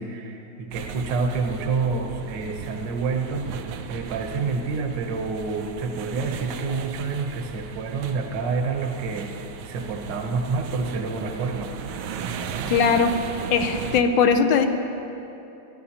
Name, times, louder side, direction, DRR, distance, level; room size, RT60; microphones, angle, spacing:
voice 1, 0.0-11.7, right 4 dB, 65° right, 3 dB, 1.5 m, -28 dB
sound 1, 0.7-14.0, right 6 dB, 85° right, 1.5 m, -36 dB
voice 2, 12.7-13.2 13.5-14.7, left 6 dB, 70° left, 7 dB, 1.4 m, -19 dB
25.5 x 10.5 x 2.9 m, 2.9 s
omnidirectional pair, 2.3 m